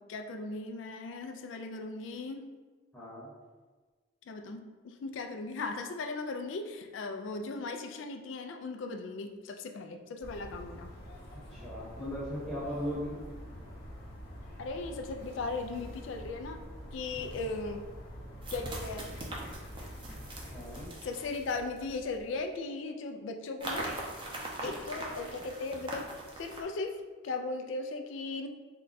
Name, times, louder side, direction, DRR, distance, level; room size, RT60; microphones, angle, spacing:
voice 1, 0.1-2.6 4.3-10.9 14.6-16.6 16.9-17.9 18.5-19.1 21.0-23.9 24.6-28.5, left 3 dB, 65° left, 5 dB, 0.3 m, -38 dB
voice 2, 2.9-3.3 11.3-13.1 17.1-17.5 20.4-20.9, equal, 5° left, -9 dB, 0.9 m, -38 dB
sound 1, 10.2-20.9, equal, 50° left, 0.7 m, -46 dB
sound 2, 18.4-22.3 23.6-26.6, right 1 dB, 25° right, 0.5 m, -41 dB
3.7 x 2.2 x 3.9 m, 1.4 s
head